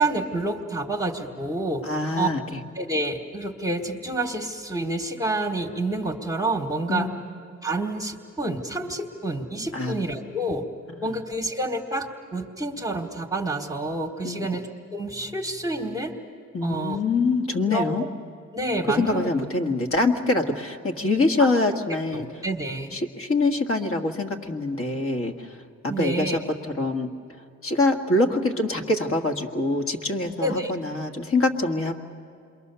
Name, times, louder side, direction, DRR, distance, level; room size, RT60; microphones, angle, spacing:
voice 1, 0.0-1.8 2.2-2.3 2.7-7.1 7.6-10.6 11.0-16.1 16.6-17.0 17.7-17.9 18.5-19.3 21.4-21.5 22.1-23.0 25.9-26.4 30.4-30.7, right 2 dB, 10° right, 2 dB, 1.5 m, -28 dB
voice 2, 1.8-2.6 6.9-7.3 9.7-10.0 11.0-11.1 14.2-14.5 16.5-18.0 18.9-22.3 22.9-25.6 26.0-27.1 27.6-31.9, left 2 dB, 45° left, 5 dB, 1.9 m, -24 dB
27.5 x 22.5 x 6.9 m, 2.4 s
cardioid pair, 90°, 30 cm